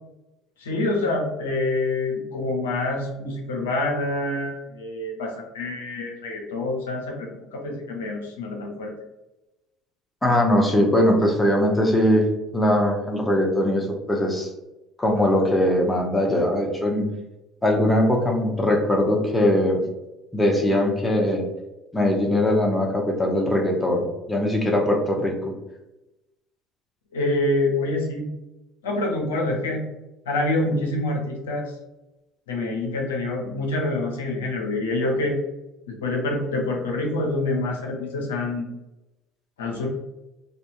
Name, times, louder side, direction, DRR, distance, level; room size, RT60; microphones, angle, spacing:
voice 1, 0.6-8.9 27.1-28.3 28.8-29.8 30.3-31.7 32.5-35.4 35.9-38.7 39.6-39.9, left 2 dB, 85° left, 0 dB, 0.5 m, -26 dB
voice 2, 10.2-12.3 12.5-14.5 15.0-17.1 17.6-19.8 20.3-21.4 21.9-25.5, left 1 dB, 15° left, 0 dB, 0.7 m, -21 dB
2.7 x 2.3 x 2.6 m, 0.98 s
hypercardioid pair, 65°, 0 cm